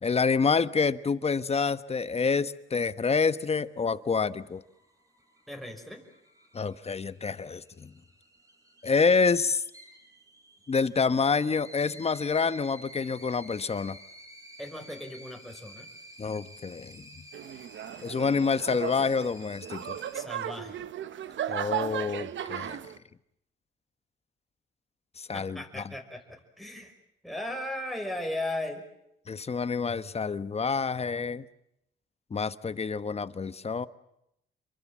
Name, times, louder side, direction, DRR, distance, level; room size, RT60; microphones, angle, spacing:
voice 1, 0.0-4.6 6.5-7.9 8.8-9.6 10.7-14.0 16.2-17.2 18.0-20.0 21.5-22.8 25.2-25.8 29.3-31.5 32.3-33.9, left 5 dB, 30° left, 1.1 m, -27 dB
sound 1, 3.9-20.1, right 1 dB, 15° right, 6.8 m, -51 dB
voice 2, 5.5-6.1 14.6-15.9 20.1-20.8 25.3-26.9 27.2-28.8, left 1 dB, ahead, 5.5 m, -37 dB
sound 2, 17.3-23.0, right 11 dB, 65° right, 1.1 m, -36 dB
28.0 x 23.0 x 7.5 m
cardioid pair, 100°, 21 cm